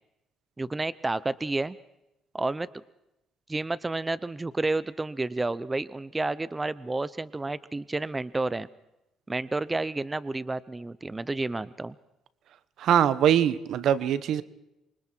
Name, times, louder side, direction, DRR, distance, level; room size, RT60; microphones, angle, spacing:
voice 1, 0.6-1.8 2.3-2.7 3.5-8.7 9.3-11.9, right 2 dB, 15° right, 17 dB, 0.7 m, -30 dB
voice 2, 12.8-14.4, right 10 dB, 70° right, 15 dB, 1.2 m, -22 dB
26.5 x 24.5 x 4.6 m, 0.91 s
cardioid pair, 100°, 0 cm